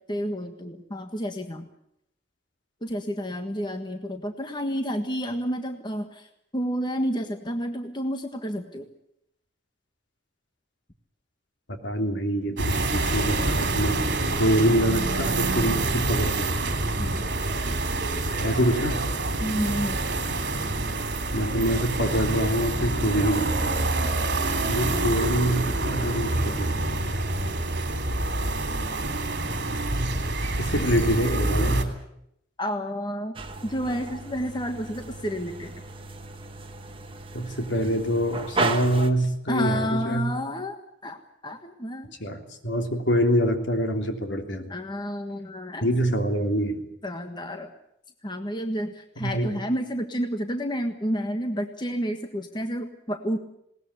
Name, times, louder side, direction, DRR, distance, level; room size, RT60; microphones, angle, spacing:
voice 1, 0.0-1.7 2.8-8.9 17.0-17.2 19.4-20.0 32.6-33.3 33.6-35.8 39.5-40.8 41.0-42.1 44.7-45.9 47.0-47.7 48.2-53.4, equal, 25° left, 6 dB, 1.5 m, -30 dB
voice 2, 11.7-13.9 14.4-16.5 18.4-19.0 21.3-23.6 24.7-26.9 30.6-31.9 37.3-40.2 42.2-44.7 45.8-46.9 49.2-49.5, equal, 70° left, 5 dB, 3.2 m, -25 dB
sound 1, 12.6-31.8, right 2 dB, 60° right, 3.3 m, -27 dB
sound 2, 33.4-39.1, right 3 dB, 30° right, 1.6 m, -34 dB
20.5 x 19.0 x 9.7 m, 0.76 s
head